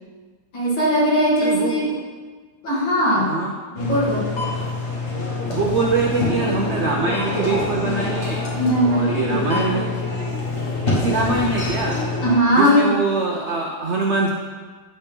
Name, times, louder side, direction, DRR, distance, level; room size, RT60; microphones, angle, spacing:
voice 1, 0.5-1.9 2.6-3.4 3.7-4.3 8.6-9.6 12.2-12.9, equal, 70° left, -7 dB, 3.1 m, -19 dB
voice 2, 1.4-2.0 3.2-3.5 5.5-8.4 8.8-9.9 10.8-12.0 12.5-14.3, right 3 dB, 85° right, -1 dB, 0.6 m, -23 dB
sound 1, 3.8-12.4, left 2 dB, 35° left, 1.6 m, -25 dB
9.1 x 4.3 x 5.3 m, 1.4 s
omnidirectional pair, 2.2 m